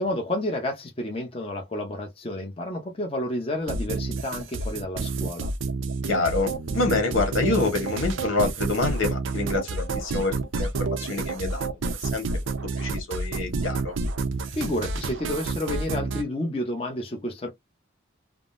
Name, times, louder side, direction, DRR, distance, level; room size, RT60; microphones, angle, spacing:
voice 1, 0.0-5.5 14.5-17.5, left 1 dB, 30° left, 0.7 m, -30 dB
sound 1, 3.7-16.2, right 3 dB, 70° right, 0.5 m, -29 dB
voice 2, 6.1-11.7 12.0-12.2 12.8-13.9, left 3 dB, 85° left, 1.3 m, -27 dB
3.6 x 2.0 x 2.5 m
head